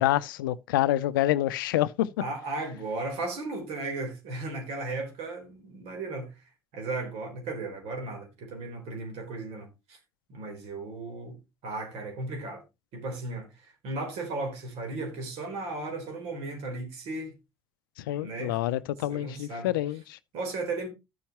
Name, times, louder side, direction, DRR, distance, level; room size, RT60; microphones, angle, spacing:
voice 1, 0.0-2.1 18.0-20.2, left 14 dB, 90° left, 0.5 m, -27 dB
voice 2, 2.2-6.3 6.7-10.0 10.3-11.4 11.6-12.6 12.9-17.3 18.2-18.5 19.1-19.7 20.3-20.9, right 2 dB, 70° right, 4.0 m, -35 dB
13.5 x 7.2 x 3.0 m
hypercardioid pair, 60°, 11 cm